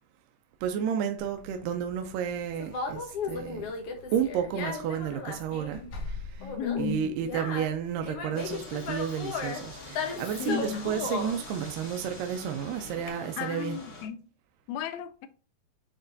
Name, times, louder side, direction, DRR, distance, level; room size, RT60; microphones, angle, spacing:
voice 1, 0.6-3.7 4.1-13.8, right 8 dB, 80° right, 2.3 m, -32 dB
Conversation, 1.2-13.1, left 4 dB, 65° left, 1.6 m, -36 dB
voice 2, 6.4-7.1 10.4-11.1 13.4-14.2 14.7-15.3, left 7 dB, 85° left, 1.6 m, -34 dB
sound 1, 8.3-14.1, left 2 dB, 35° left, 1.2 m, -45 dB
8.9 x 4.0 x 2.7 m
omnidirectional pair, 3.9 m